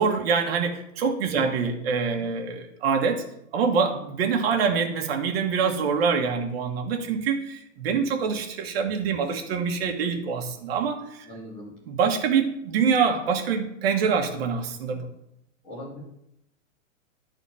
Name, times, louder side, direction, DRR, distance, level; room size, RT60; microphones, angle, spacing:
voice 1, 0.0-3.2 3.5-11.3 11.9-15.1, right 6 dB, 45° right, 4 dB, 1.6 m, -25 dB
voice 2, 11.2-11.7 15.6-16.0, equal, 5° left, -6 dB, 0.4 m, -38 dB
11.0 x 4.2 x 5.6 m, 0.79 s
hypercardioid pair, 165°, 41 cm